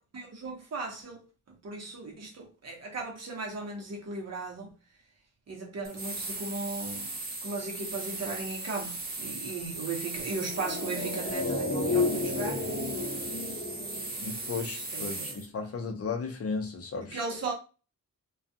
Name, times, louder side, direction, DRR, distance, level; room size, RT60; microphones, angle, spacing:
voice 1, 0.1-4.7 5.5-7.1 7.4-12.6 14.9-15.4 17.1-17.5, right 3 dB, 50° right, 0.9 m, -37 dB
sound 1, 5.8-15.5, right 2 dB, 30° right, 0.5 m, -38 dB
sound 2, 10.3-14.9 15.1-15.2, left 3 dB, 15° left, 0.9 m, -32 dB
voice 2, 14.2-17.2, left 4 dB, 45° left, 0.6 m, -35 dB
2.3 x 2.3 x 2.6 m
wide cardioid pair, 145°, 34 cm